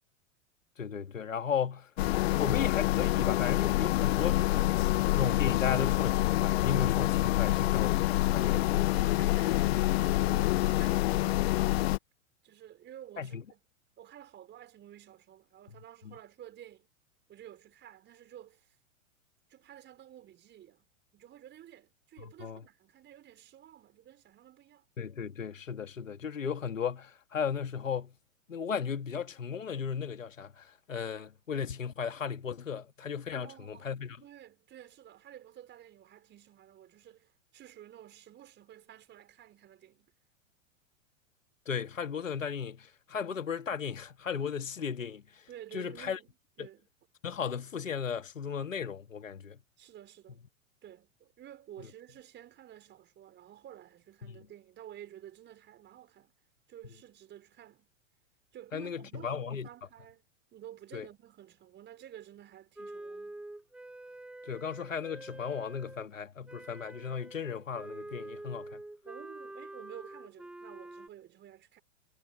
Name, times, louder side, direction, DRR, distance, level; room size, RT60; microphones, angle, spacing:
voice 1, 0.8-1.9 2.3-8.6 13.2-13.4 16.0-16.1 22.2-22.6 25.0-28.1 28.5-34.2 41.7-46.2 46.6-46.7 47.2-49.6 51.8-51.9 58.7-59.7 60.9-61.1 64.5-68.8, left 7 dB, 80° left, 2.6 m, -35 dB
sound 1, 2.0-12.0, left 17 dB, 50° left, 0.5 m, -27 dB
voice 2, 8.4-11.9 12.4-13.6 14.0-16.9 17.3-18.8 19.5-24.8 33.4-33.9 34.2-40.1 45.5-46.3 46.6-46.8 49.8-50.4 50.8-56.3 56.7-57.9 58.5-60.2 60.5-63.5 69.0-71.8, right 11 dB, 30° right, 4.8 m, -51 dB
Wind instrument woodwind instrument, 62.8-66.1 66.5-71.1, right 2 dB, 5° right, 0.6 m, -46 dB
figure-of-eight pair, 100°, 39 cm